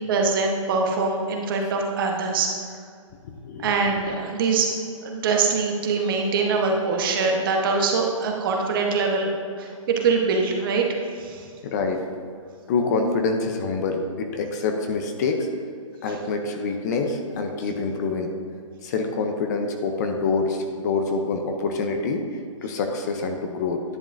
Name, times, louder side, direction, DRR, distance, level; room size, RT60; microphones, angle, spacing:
voice 1, 0.1-2.5 3.6-4.7 5.0-10.9 11.2-11.4, right 4 dB, 40° right, 1 dB, 1.1 m, -23 dB
voice 2, 3.4-3.7 11.6-12.0 12.7-15.5 16.0-18.3 18.8-23.8, left 4 dB, 30° left, 4 dB, 0.6 m, -26 dB
10.5 x 7.2 x 2.6 m, 2.3 s
hypercardioid pair, 155°, 17 cm